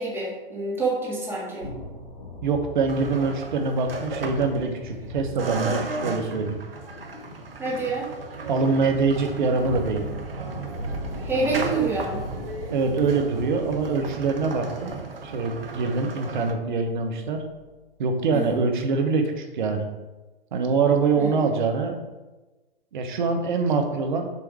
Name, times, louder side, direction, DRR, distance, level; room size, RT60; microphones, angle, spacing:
voice 1, 0.0-1.7 7.6-8.1 11.2-12.2 18.3-18.6 21.1-21.4, right 3 dB, 10° right, -5 dB, 1.9 m, -27 dB
sound 1, 1.6-17.8, equal, 75° left, 2.2 m, -38 dB
voice 2, 2.4-6.6 8.5-10.1 12.7-15.0 15.2-17.4 18.0-19.9 20.5-22.0 22.9-24.3, right 4 dB, 55° right, 4 dB, 1.2 m, -24 dB
sound 2, 2.9-5.1 5.4-16.5, right 3 dB, 75° right, 1.0 m, -36 dB
7.2 x 3.7 x 4.8 m, 1.1 s
figure-of-eight pair, 115°, 29 cm